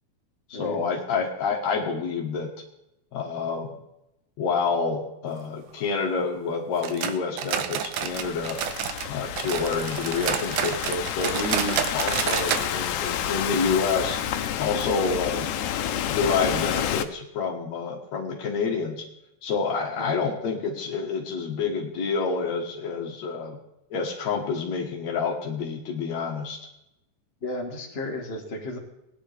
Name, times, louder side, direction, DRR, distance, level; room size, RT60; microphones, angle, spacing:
voice 1, 0.5-2.5 3.1-3.7 4.4-8.6 9.1-14.2 14.6-15.5 16.1-19.1 19.4-23.6 23.9-26.6, left 5 dB, 65° left, 1 dB, 2.5 m, -28 dB
sound 1, 6.8-9.1 9.4-12.7 13.0-13.1 13.4-13.5 14.1-14.2, right 9 dB, 80° right, 2.2 m, -29 dB
Thunderstorm / Rain, 8.0-17.0, left 10 dB, 85° left, 2.2 m, -30 dB
voice 2, 27.4-28.8, left 2 dB, 25° left, -1 dB, 1.9 m, -33 dB
19.0 x 10.0 x 3.3 m, 0.87 s
omnidirectional pair, 3.5 m